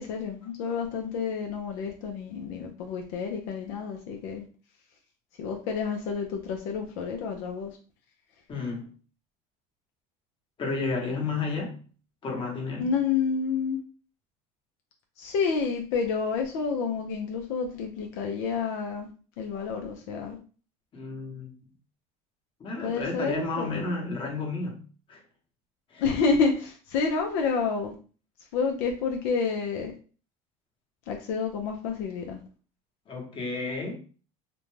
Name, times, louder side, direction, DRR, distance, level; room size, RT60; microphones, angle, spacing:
voice 1, 0.0-4.5 5.4-7.7 12.8-13.8 15.2-19.1 19.4-20.4 22.8-23.9 26.0-27.9 28.5-29.9 31.1-32.4, left 5 dB, 75° left, 0.5 m, -29 dB
voice 2, 8.5-8.9 10.6-11.8 12.2-12.9 20.9-21.5 22.6-24.8 25.1-25.2 25.9-26.0 33.1-33.9, left 3 dB, 30° left, 1.0 m, -32 dB
2.5 x 2.2 x 3.1 m
supercardioid pair, 125°, 17 cm